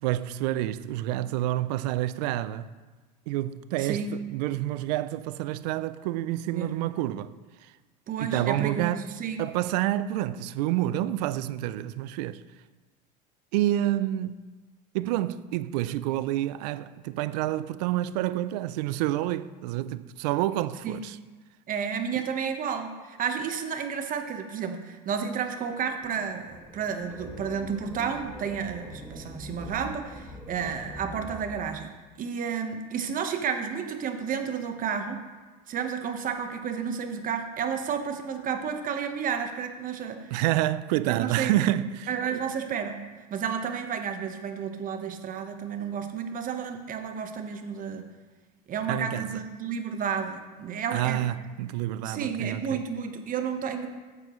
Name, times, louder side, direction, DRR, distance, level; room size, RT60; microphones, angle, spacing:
voice 1, 0.0-2.7 3.3-4.0 4.3-7.3 8.2-9.1 9.4-12.4 13.5-14.4 14.9-21.2 40.3-42.4 48.9-49.3 50.9-52.8, right 14 dB, 75° right, 0.5 m, -28 dB
voice 2, 3.8-4.2 6.5-6.8 8.1-9.4 20.8-21.0 21.7-31.9 32.2-35.2 35.7-40.3 41.1-41.6 42.1-43.0 43.3-48.1 48.7-51.3 52.0-53.9, right 7 dB, 40° right, 1.1 m, -31 dB
sound 1, 26.0-31.8, equal, 5° right, 1.4 m, -43 dB
11.5 x 7.6 x 3.1 m
hypercardioid pair, 95°, 21 cm